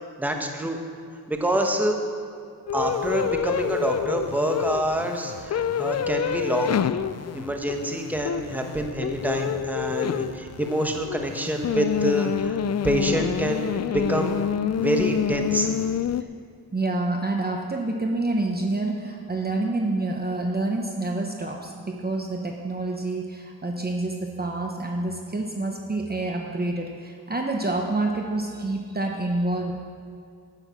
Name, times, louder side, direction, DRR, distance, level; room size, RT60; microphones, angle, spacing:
voice 1, 0.2-0.8 1.3-2.0 2.7-6.7 7.3-12.6 12.8-14.4 14.8-15.7, right 1 dB, 5° right, 3 dB, 1.2 m, -26 dB
sound 1, 2.7-16.2, left 8 dB, 45° left, 0.4 m, -27 dB
voice 2, 16.7-29.7, right 2 dB, 25° right, 2 dB, 1.0 m, -27 dB
10.5 x 8.9 x 6.0 m, 2.3 s
cardioid pair, 80°, 39 cm